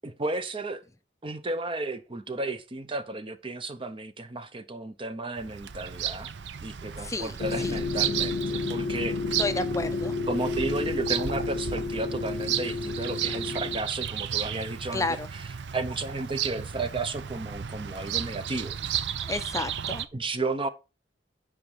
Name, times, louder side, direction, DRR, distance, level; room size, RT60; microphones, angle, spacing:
voice 1, 0.0-0.8 1.2-6.3 6.6-9.2 10.3-15.2 15.7-18.8 20.1-20.7, right 2 dB, 30° right, 0.8 m, -33 dB
Bird vocalization bird call bird song, 5.4-20.1, right 9 dB, 70° right, 0.5 m, -34 dB
voice 2, 7.0-7.3 7.6-7.8 9.4-10.2 14.9-15.3 19.2-20.1, left 3 dB, 20° left, 0.5 m, -31 dB
sound 1, 7.4-13.8, left 4 dB, 75° left, 0.8 m, -31 dB
9.3 x 5.0 x 4.6 m
head